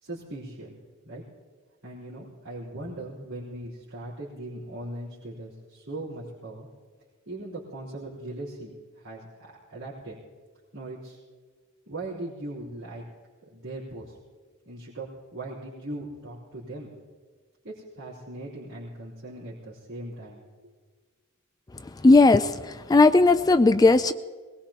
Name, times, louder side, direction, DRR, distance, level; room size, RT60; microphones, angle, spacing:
voice 1, 0.0-0.8 1.0-1.2 1.8-6.7 7.3-10.2 10.7-11.2 11.9-13.1 13.5-14.2 14.6-16.9 17.6-20.7, right 1 dB, 85° right, -10 dB, 3.8 m, -39 dB
voice 2, 22.0-22.5 22.9-24.1, left 3 dB, 20° left, 11 dB, 0.3 m, -16 dB
22.5 x 20.5 x 2.9 m, 1.5 s
head